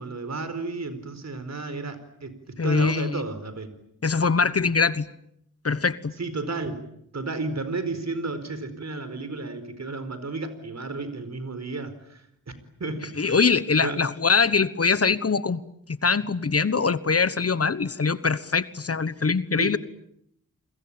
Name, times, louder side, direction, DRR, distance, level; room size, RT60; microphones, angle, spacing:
voice 1, 0.0-3.7 6.2-6.8 7.1-12.5 12.8-13.4 13.8-14.0 19.6-19.8, right 3 dB, 55° right, 12 dB, 4.6 m, -32 dB
voice 2, 2.6-3.2 4.0-5.1 5.6-6.1 13.2-15.6 15.9-19.8, left 5 dB, 45° left, 15 dB, 1.2 m, -23 dB
29.5 x 22.0 x 8.8 m, 0.75 s
cardioid pair, 60°, 33 cm